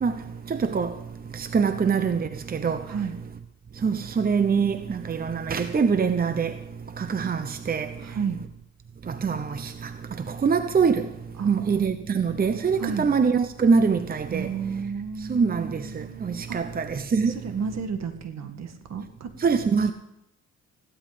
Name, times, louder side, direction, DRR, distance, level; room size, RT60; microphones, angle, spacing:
voice 1, 0.5-0.9 1.3-2.8 3.8-6.6 7.0-7.9 9.1-9.9 10.2-11.1 11.5-14.5 15.3-17.4 19.4-19.9, right 5 dB, 30° right, 0.9 m, -24 dB
voice 2, 2.8-3.2 8.0-8.4 11.4-11.7 12.8-13.1 14.3-16.6 17.3-19.3, right 6 dB, 60° right, 2.0 m, -32 dB
15.5 x 12.0 x 5.1 m
cardioid pair, 90°, 30 cm